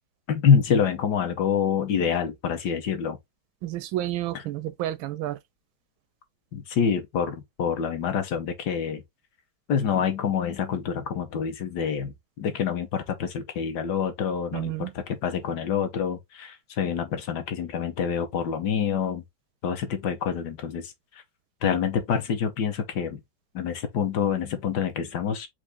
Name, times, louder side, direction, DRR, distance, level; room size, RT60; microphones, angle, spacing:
voice 1, 0.3-3.2 6.5-9.0 9.7-19.2 19.6-21.2 21.6-23.2 23.5-25.5, left 7 dB, 65° left, 1.3 m, -26 dB
voice 2, 3.6-5.4 14.5-14.9, right 14 dB, 90° right, 1.4 m, -30 dB
4.7 x 2.6 x 3.7 m
omnidirectional pair, 2.1 m